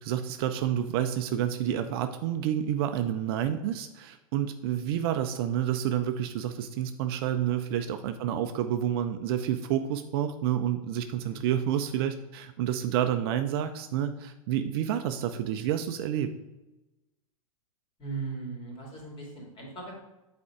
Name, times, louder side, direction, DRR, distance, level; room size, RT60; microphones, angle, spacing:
voice 1, 0.0-16.3, right 10 dB, 45° right, 8 dB, 0.5 m, -29 dB
voice 2, 11.2-11.5 18.0-19.9, right 4 dB, 30° left, -1 dB, 2.5 m, -39 dB
8.5 x 4.3 x 4.7 m, 1.0 s
figure-of-eight pair, 100°, 18 cm